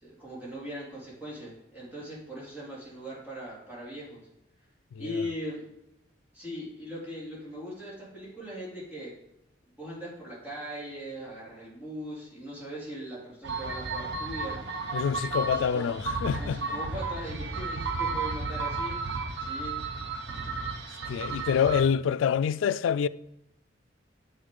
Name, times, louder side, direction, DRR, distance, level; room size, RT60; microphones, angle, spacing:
voice 1, 0.0-4.2 5.0-5.7 6.3-9.1 9.8-14.6 15.3-19.0 19.4-19.8, equal, 10° right, 2.9 m, -40 dB
sound 1, 13.4-21.8, right 3 dB, 65° right, 0.9 m, -33 dB
voice 2, 14.9-16.6 21.1-23.1, left 7 dB, 90° left, 0.3 m, -26 dB
7.9 x 6.6 x 3.8 m
head